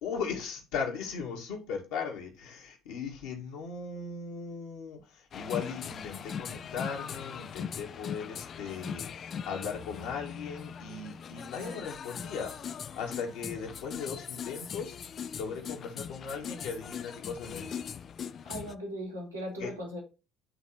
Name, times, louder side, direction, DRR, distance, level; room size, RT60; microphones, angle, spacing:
voice 1, 0.0-17.8 19.6-19.7, left 6 dB, 60° left, 1.9 m, -38 dB
sound 1, 5.3-18.7, left 7 dB, 40° left, 0.4 m, -40 dB
voice 2, 18.4-20.0, equal, 85° right, 2.5 m, -38 dB
11.0 x 3.9 x 2.9 m
figure-of-eight pair, 55°, 0 cm